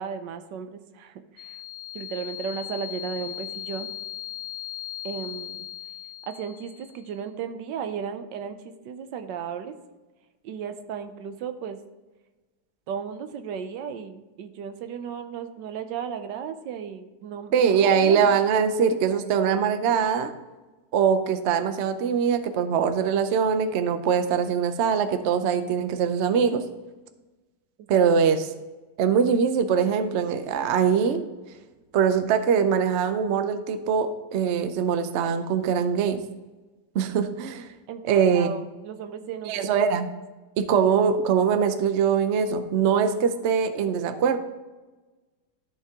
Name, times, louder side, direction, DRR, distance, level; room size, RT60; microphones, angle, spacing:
voice 1, 0.0-1.6 1.9-3.9 5.0-5.7 6.2-9.7 10.4-11.8 12.9-18.3 27.8-28.0 37.9-39.8, right 7 dB, 90° right, 9 dB, 1.4 m, -35 dB
sound 1, 1.4-7.0, left 12 dB, 90° left, 1.3 m, -38 dB
voice 2, 17.5-20.3 20.9-26.6 27.9-28.4 29.0-31.2 31.9-36.2 36.9-37.7 38.1-38.5 39.5-40.1 40.6-44.4, right 7 dB, 60° right, 9 dB, 0.7 m, -22 dB
13.0 x 4.7 x 3.6 m, 1.2 s
omnidirectional pair, 1.9 m